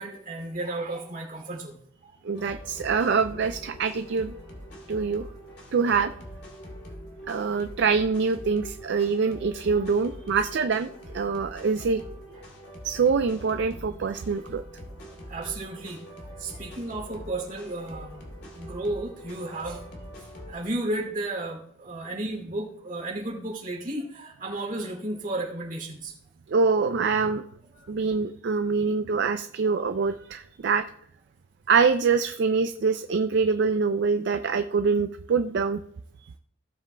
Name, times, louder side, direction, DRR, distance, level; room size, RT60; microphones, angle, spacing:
voice 1, 0.0-2.1 6.9-7.0 9.7-9.9 11.8-11.9 15.3-18.2 18.5-19.8 20.5-26.2 27.7-27.9, right 2 dB, 45° right, -1 dB, 2.6 m, -33 dB
voice 2, 2.2-4.3 4.9-5.2 5.7-6.1 7.3-10.9 11.1-12.0 12.8-14.6 26.5-27.4 27.9-30.8 31.7-35.8 36.2-36.3, right 5 dB, 60° right, 9 dB, 0.4 m, -24 dB
sound 1, 2.3-20.5, equal, 55° left, 2.6 m, -43 dB
17.0 x 7.4 x 2.2 m, 0.69 s
head